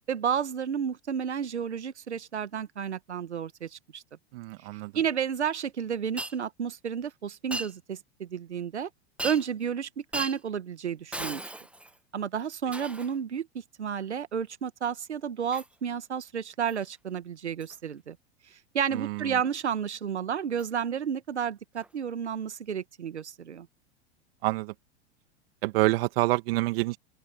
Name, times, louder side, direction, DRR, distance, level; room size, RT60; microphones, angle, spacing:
voice 1, 0.1-4.0 4.9-8.9 9.2-11.4 12.1-13.5 13.8-18.2 18.5-23.7, right 7 dB, 85° right, 2.0 m, -31 dB
voice 2, 4.3-4.9 18.9-19.4 24.4-24.7 25.6-27.0, right 20 dB, 60° right, 2.1 m, -27 dB
Shatter, 6.2-6.4 7.5-7.7 9.2-9.6 10.1-10.4 11.1-12.0 12.7-13.2 15.5-15.7 16.7-16.8 17.6-17.7 20.6-20.7 21.8-21.9, right 1 dB, 5° right, 1.2 m, -37 dB
open air
hypercardioid pair, 95°, 33 cm